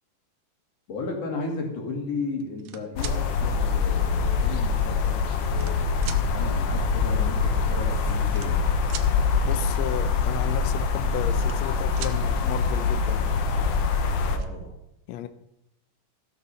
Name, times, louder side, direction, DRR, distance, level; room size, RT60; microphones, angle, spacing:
voice 1, 0.9-8.6 14.2-14.8, left 3 dB, 50° left, 1 dB, 3.2 m, -34 dB
sound 1, 2.4-3.2 4.2-4.3 5.1-5.8 6.0-6.2 7.4-7.5 7.7-7.9 8.2-9.1 11.0-11.7 12.0-12.2 13.7-13.8 14.1-14.5, right 11 dB, 85° right, 2.4 m, -40 dB
sound 2, 3.0-14.4, left 5 dB, 70° left, 1.5 m, -24 dB
voice 2, 9.4-13.3 15.1-15.3, left 11 dB, 85° left, 11 dB, 1.5 m, -34 dB
15.0 x 6.9 x 5.6 m, 0.82 s
omnidirectional pair, 3.9 m